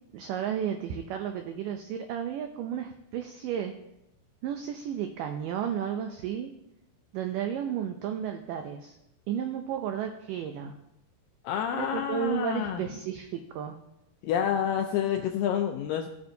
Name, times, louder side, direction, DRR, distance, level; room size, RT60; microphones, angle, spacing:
voice 1, 0.1-3.7 4.4-6.5 7.1-9.0 9.3-10.7 11.7-13.8, right 9 dB, 90° right, 6 dB, 1.9 m, -33 dB
voice 2, 11.4-12.8 14.2-16.1, left 9 dB, 85° left, 4 dB, 2.0 m, -28 dB
16.0 x 7.8 x 2.7 m, 0.86 s
omnidirectional pair, 4.6 m